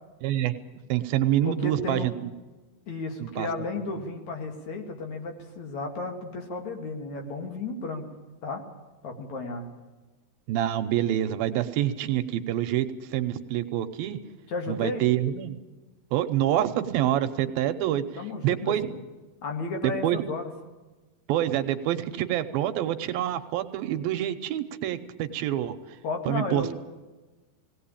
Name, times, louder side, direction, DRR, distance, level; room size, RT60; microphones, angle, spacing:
voice 1, 0.2-0.5 0.9-2.1 3.2-3.5 10.5-14.2 14.7-15.6 16.1-18.0 18.4-18.9 19.8-20.2 21.3-25.8 26.3-26.7, right 12 dB, 80° right, 9 dB, 2.6 m, -26 dB
voice 2, 1.4-2.1 2.9-8.1 8.4-8.6 9.0-9.6 14.5-15.1 18.2-18.9 19.4-20.5 26.0-26.7, left 3 dB, 55° left, 3 dB, 3.1 m, -33 dB
19.0 x 17.5 x 8.7 m, 1.2 s
omnidirectional pair, 4.3 m